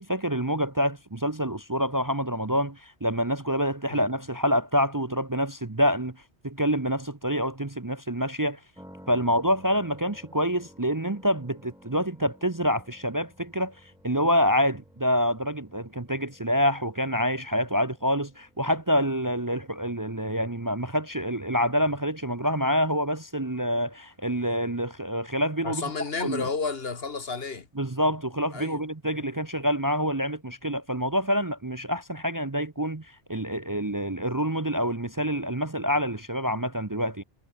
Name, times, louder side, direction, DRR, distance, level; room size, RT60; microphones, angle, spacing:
voice 1, 0.0-6.2 6.4-8.6 9.1-13.7 14.0-25.8 26.2-26.5 27.8-37.2, equal, 20° right, 0.9 m, -27 dB
sound 1, 8.7-22.6, equal, 5° right, 6.5 m, -55 dB
voice 2, 25.6-27.7 28.5-28.8 29.2-29.3, left 4 dB, 60° left, 1.8 m, -32 dB
omnidirectional pair, 1.1 m